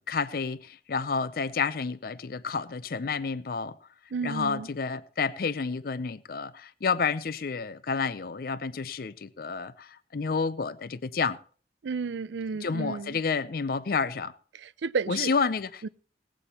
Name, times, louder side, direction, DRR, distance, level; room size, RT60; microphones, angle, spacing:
voice 1, 0.1-3.8 4.2-11.4 12.6-14.4 15.1-15.9, left 5 dB, 55° left, 0.5 m, -30 dB
voice 2, 4.1-4.7 11.8-13.2 14.5-15.3 15.8-15.9, right 5 dB, 85° right, 0.4 m, -32 dB
18.5 x 8.5 x 4.2 m
head